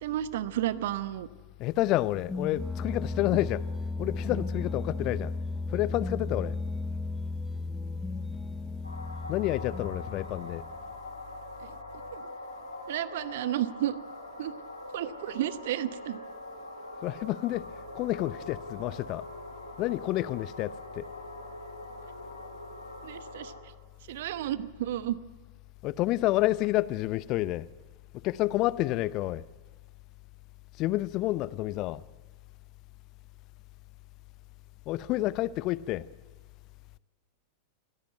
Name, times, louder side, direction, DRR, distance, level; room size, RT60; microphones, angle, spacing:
voice 1, 0.0-1.3 11.6-11.7 12.1-12.3 12.9-14.0 14.4-14.5 14.9-16.2 23.0-23.5 24.1-25.2, right 12 dB, 55° right, 1.0 m, -32 dB
voice 2, 1.6-3.6 4.0-5.3 5.7-6.6 9.3-10.6 17.0-17.7 17.9-19.2 19.8-21.1 25.8-27.7 28.2-29.4 30.8-32.0 34.9-36.1, left 16 dB, 40° left, 0.7 m, -29 dB
sound 1, 2.1-10.9, left 3 dB, 10° left, 1.2 m, -35 dB
sound 2, 8.8-23.6, left 1 dB, 85° left, 3.7 m, -43 dB
24.5 x 17.0 x 9.2 m
figure-of-eight pair, 90°, 0 cm